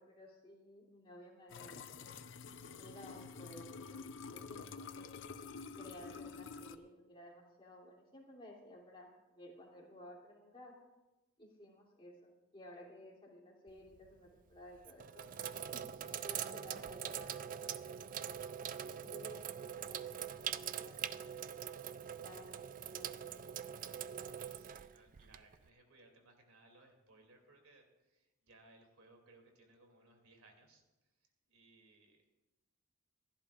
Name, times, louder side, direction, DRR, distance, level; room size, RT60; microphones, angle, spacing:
voice 1, 0.0-2.1 2.8-4.0 4.3-5.2 5.7-10.7 11.4-15.3 15.6-15.8 16.1-18.0 18.8-21.1 22.2-23.3, left 1 dB, 25° left, -3 dB, 2.8 m, -56 dB
sound 1, 1.5-6.8, left 5 dB, 60° left, 0.6 m, -48 dB
Sink (filling or washing), 13.7-14.1 14.7-25.7, right 9 dB, 40° right, 0.3 m, -43 dB
voice 2, 24.4-30.8 31.2-32.2, right 2 dB, 90° right, 3 dB, 2.7 m, -64 dB
27.5 x 11.5 x 2.5 m, 1.1 s
head